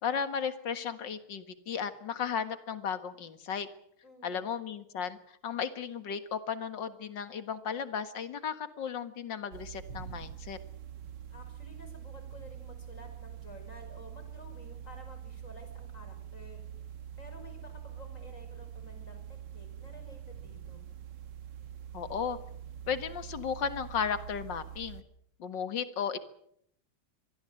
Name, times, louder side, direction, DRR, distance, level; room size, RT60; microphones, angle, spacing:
voice 1, 0.0-3.7 4.2-10.6 21.9-22.4 22.9-25.0 25.4-26.2, left 7 dB, 55° left, 11 dB, 2.2 m, -35 dB
voice 2, 4.0-4.5 11.3-16.6 17.2-20.9, left 1 dB, 35° left, 7 dB, 6.0 m, -52 dB
sound 1, 9.5-25.0, right 9 dB, 55° right, 1.9 m, -45 dB
25.0 x 19.5 x 7.8 m, 0.71 s
omnidirectional pair, 2.4 m